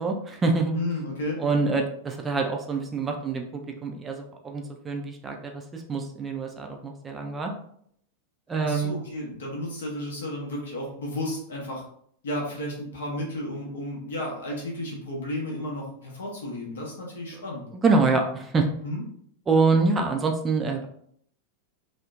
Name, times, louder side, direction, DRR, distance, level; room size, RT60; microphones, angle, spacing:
voice 1, 0.0-0.7 1.4-7.5 8.5-9.0 17.8-18.7 19.5-20.9, right 4 dB, 20° right, 3 dB, 0.3 m, -25 dB
voice 2, 0.7-1.4 8.6-11.8 12.2-17.6 18.8-19.0, left 1 dB, 65° left, -2 dB, 0.8 m, -33 dB
2.7 x 2.1 x 2.3 m, 0.66 s
figure-of-eight pair, 90°, 0 cm